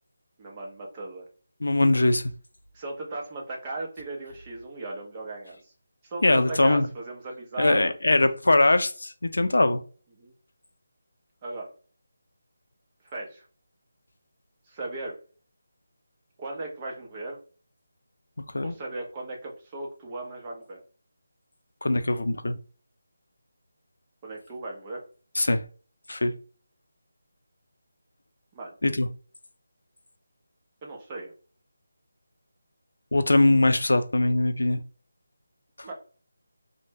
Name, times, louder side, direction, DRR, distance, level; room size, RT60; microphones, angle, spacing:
voice 1, 0.4-1.2 2.7-5.7 6.0-7.9 10.2-10.3 11.4-11.7 13.0-13.5 14.7-15.2 16.4-17.4 18.6-20.8 24.2-25.0 28.5-28.7 30.8-31.3 35.8-35.9, right 2 dB, 20° right, 0.5 m, -37 dB
voice 2, 1.6-2.3 6.2-6.9 7.6-9.8 18.5-18.7 21.8-22.6 25.4-25.6 26.1-26.3 28.8-29.1 33.1-34.8 35.8-35.9, left 2 dB, 85° left, 0.4 m, -22 dB
2.1 x 2.0 x 3.2 m
figure-of-eight pair, 170°, 0 cm